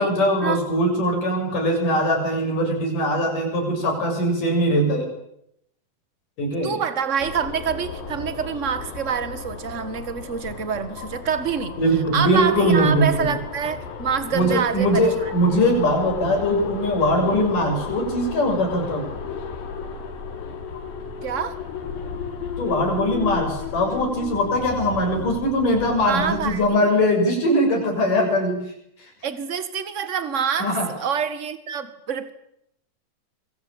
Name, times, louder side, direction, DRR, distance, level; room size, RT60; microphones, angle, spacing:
voice 1, 0.0-5.1 6.4-6.8 11.8-13.3 14.3-19.0 22.6-28.6 29.0-29.1 30.6-30.9, equal, 65° left, 3 dB, 8.6 m, -21 dB
voice 2, 6.6-11.7 12.1-15.3 21.2-21.6 26.0-26.7 29.2-32.3, right 7 dB, 30° right, 11 dB, 1.5 m, -26 dB
sound 1, 7.2-26.6, left 5 dB, 85° left, 4.7 m, -34 dB
26.5 x 23.0 x 8.9 m, 0.77 s
omnidirectional pair, 4.0 m